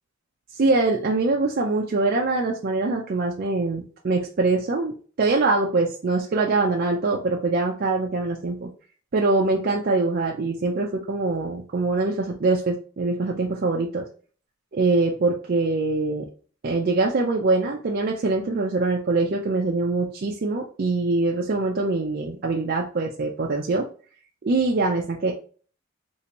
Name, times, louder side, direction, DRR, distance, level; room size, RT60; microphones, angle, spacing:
voice 1, 0.5-8.7 9.1-14.1 14.7-16.3 16.6-23.9 24.4-25.3, right 3 dB, 45° right, 0 dB, 0.4 m, -23 dB
3.3 x 2.7 x 2.9 m, 0.41 s
head